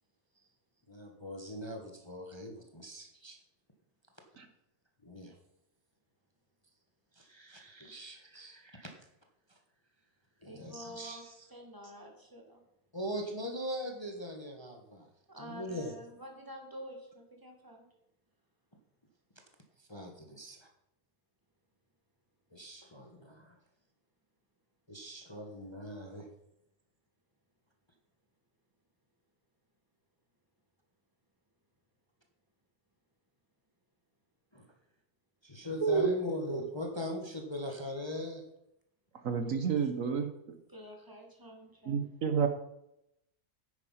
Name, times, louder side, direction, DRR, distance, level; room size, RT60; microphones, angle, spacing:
voice 1, 0.9-3.4 5.0-5.3 7.1-8.9 10.4-11.5 11.8-11.9 12.9-15.1 15.4-16.0 19.8-20.7 22.5-23.5 24.9-26.3 34.5-34.7 35.4-38.4, left 1 dB, 20° left, 3 dB, 1.3 m, -41 dB
voice 2, 10.4-11.2 11.5-12.6 15.3-17.9 40.7-42.0, equal, 15° right, 2 dB, 2.2 m, -48 dB
voice 3, 39.2-40.3 41.9-42.5, right 6 dB, 60° right, 7 dB, 1.3 m, -29 dB
9.8 x 9.0 x 5.7 m, 0.81 s
omnidirectional pair, 1.6 m